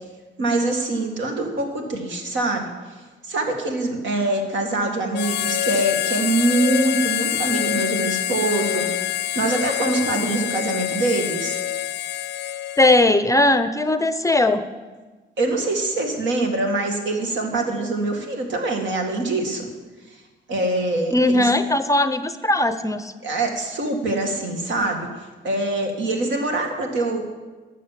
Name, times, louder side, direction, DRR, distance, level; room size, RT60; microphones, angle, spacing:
voice 1, 0.4-2.7 3.3-8.9 9.3-11.6 15.4-19.7 20.5-21.5 23.2-25.1 25.4-27.2, right 2 dB, 70° right, 3 dB, 2.1 m, -24 dB
Harmonica, 5.1-13.2, left 12 dB, 60° left, 0.5 m, -26 dB
voice 2, 12.8-14.7 21.1-23.1, left 2 dB, 15° left, 11 dB, 0.6 m, -19 dB
11.5 x 6.6 x 7.4 m, 1.3 s
cardioid pair, 90°, 20 cm